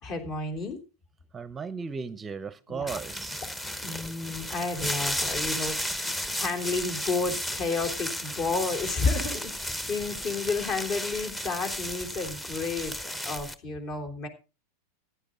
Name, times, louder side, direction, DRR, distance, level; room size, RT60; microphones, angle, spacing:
voice 1, 0.0-0.8 2.7-2.9 3.8-14.3, left 3 dB, 45° left, 6 dB, 3.4 m, -31 dB
voice 2, 1.3-3.5, right 5 dB, 20° right, 16 dB, 0.7 m, -36 dB
sound 1, 2.9-13.5, equal, 10° left, 1.1 m, -34 dB
15.0 x 9.9 x 3.8 m, 0.31 s
hypercardioid pair, 95°, 0 cm